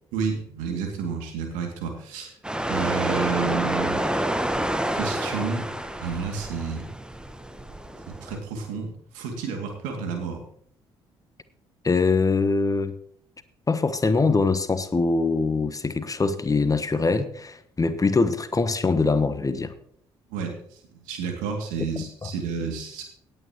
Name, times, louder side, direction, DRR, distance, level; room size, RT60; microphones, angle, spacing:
voice 1, 0.1-2.3 2.7-4.0 4.9-5.7 6.0-6.9 8.2-10.4 20.3-23.0, right 6 dB, 70° right, 3 dB, 2.5 m, -30 dB
sound 1, 2.4-8.4, right 1 dB, 5° right, 1.1 m, -28 dB
voice 2, 11.8-12.9 13.7-19.7 22.0-22.3, left 4 dB, 25° left, 12 dB, 1.1 m, -23 dB
18.0 x 8.9 x 3.0 m, 0.62 s
figure-of-eight pair, 45°, 14 cm